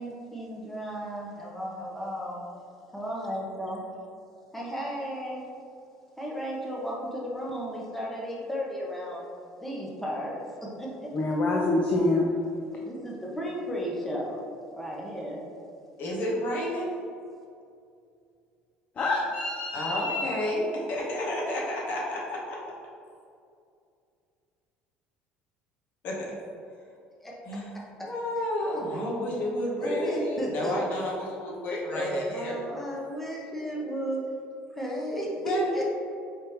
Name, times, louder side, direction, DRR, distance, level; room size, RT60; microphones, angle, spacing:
voice 1, 0.0-2.4 2.9-3.8 4.5-5.4 6.2-9.3 9.6-11.4 12.8-14.4 14.7-15.4 27.2-27.4 28.0-28.1 28.6-28.9 29.8-30.8 31.9-34.2 34.7-35.9, equal, 5° left, -4 dB, 0.8 m, -34 dB
voice 2, 11.1-12.2 19.0-20.3, left 2 dB, 35° left, -1 dB, 0.5 m, -26 dB
voice 3, 16.0-16.9 19.7-22.6 26.0-26.3 27.4-27.7 28.0-32.5 35.4-35.9, left 1 dB, 60° left, -3 dB, 1.2 m, -31 dB
4.8 x 3.4 x 3.0 m, 2.4 s
cardioid pair, 115°, 4 cm